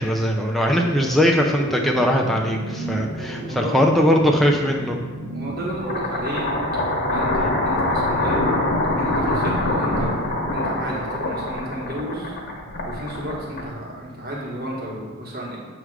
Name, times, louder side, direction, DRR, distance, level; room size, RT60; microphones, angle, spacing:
voice 1, 0.0-5.0 7.4-7.5, equal, ahead, -1 dB, 0.4 m, -20 dB
sound 1, 0.7-14.9, right 1 dB, 80° right, 1.3 m, -35 dB
voice 2, 5.3-6.6 7.1-7.3 7.6-8.4 9.0-10.1 10.5-12.3 12.8-15.6, equal, 50° right, -4 dB, 1.6 m, -32 dB
sound 2, 5.7-14.0, left 1 dB, 50° left, 1.1 m, -24 dB
7.5 x 3.3 x 4.9 m, 1.4 s
head